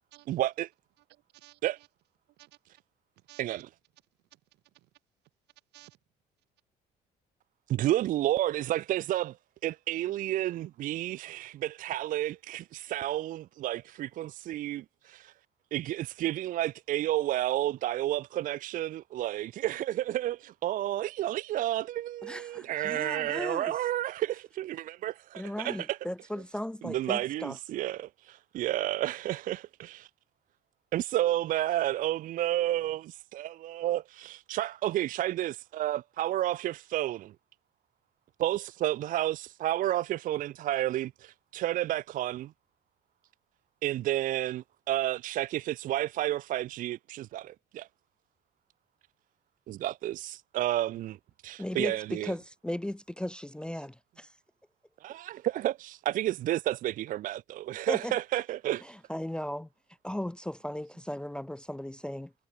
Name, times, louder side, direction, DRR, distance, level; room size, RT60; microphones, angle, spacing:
voice 1, 0.3-0.7 1.6-1.8 3.4-3.7 7.7-9.4 9.6-15.3 15.7-26.0 26.8-30.1 30.9-37.3 38.4-42.5 43.8-47.9 49.7-51.2 51.4-52.3 55.0-58.9, right 14 dB, 55° right, 0.4 m, -31 dB
voice 2, 1.0-1.9 2.4-2.6 3.2-3.4 4.3-4.9 5.7-6.0, right 18 dB, 85° right, 5.5 m, -57 dB
voice 3, 22.2-23.7 25.3-27.6 51.6-54.4 57.9-58.2 58.8-59.7 60.0-62.3, left 1 dB, 5° left, 0.4 m, -37 dB
cardioid pair, 110°, 17 cm